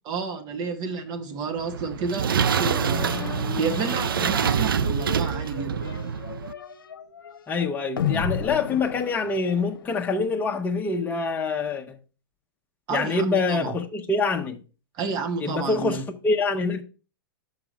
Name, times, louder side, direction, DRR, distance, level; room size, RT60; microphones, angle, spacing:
voice 1, 0.0-3.2 3.6-5.9 12.9-13.7 14.9-16.1, right 5 dB, 35° right, 1.0 m, -31 dB
sound 1, 1.6-6.5, right 7 dB, 70° right, 0.4 m, -26 dB
sound 2, 2.5-10.0, left 7 dB, 65° left, 0.8 m, -34 dB
voice 2, 7.5-12.0 12.9-14.6 15.4-16.8, left 4 dB, 15° left, 0.9 m, -25 dB
5.9 x 5.6 x 5.0 m
figure-of-eight pair, 100°, 12 cm